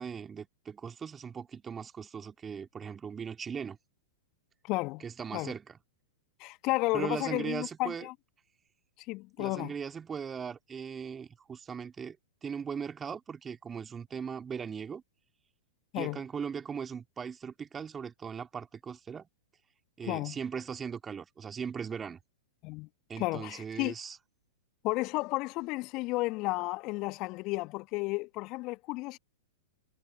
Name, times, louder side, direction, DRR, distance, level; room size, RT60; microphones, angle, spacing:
voice 1, 0.0-3.8 5.0-5.8 6.9-8.1 9.4-12.2 12.4-15.0 15.9-19.3 20.0-22.2 23.1-24.2, right 6 dB, 20° right, 2.8 m, -39 dB
voice 2, 4.6-5.0 5.3-5.5 6.4-8.1 9.1-9.7 15.9-16.2 20.1-20.4 22.6-22.9 23.2-23.9 24.8-29.2, left 23 dB, 40° left, 1.7 m, -32 dB
figure-of-eight pair, 100°, 0 cm